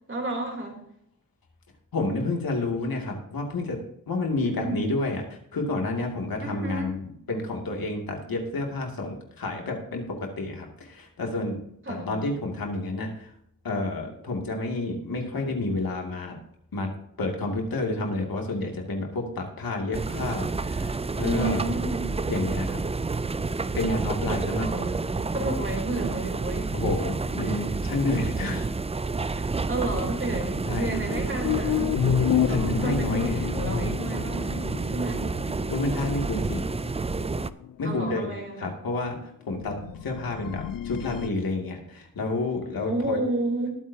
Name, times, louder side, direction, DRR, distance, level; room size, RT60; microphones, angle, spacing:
voice 1, 0.1-0.8 4.4-4.9 6.4-6.9 11.8-12.2 21.2-22.1 24.6-26.8 27.4-27.6 29.4-34.5 34.9-35.3 37.8-38.8 39.7-40.0 42.9-43.7, right 2 dB, 35° right, 0 dB, 3.5 m, -32 dB
voice 2, 1.9-3.8 4.1-7.0 7.3-11.6 11.9-13.3 13.6-16.3 16.7-16.9 17.2-21.6 22.3-22.8 23.7-24.8 26.7-28.7 30.7-31.0 32.5-33.4 35.7-36.6 37.8-38.3 38.6-39.1 39.5-39.8 40.0-43.2, left 2 dB, 90° left, 1 dB, 2.5 m, -29 dB
sound 1, 19.9-37.5, right 3 dB, 20° right, 0.4 m, -29 dB
sound 2, 30.2-30.4 31.0-38.2 38.5-38.6 38.9-39.0 39.5-41.3, left 11 dB, 75° left, 0.5 m, -30 dB
20.0 x 9.3 x 2.8 m, 0.71 s
wide cardioid pair, 110°, 34 cm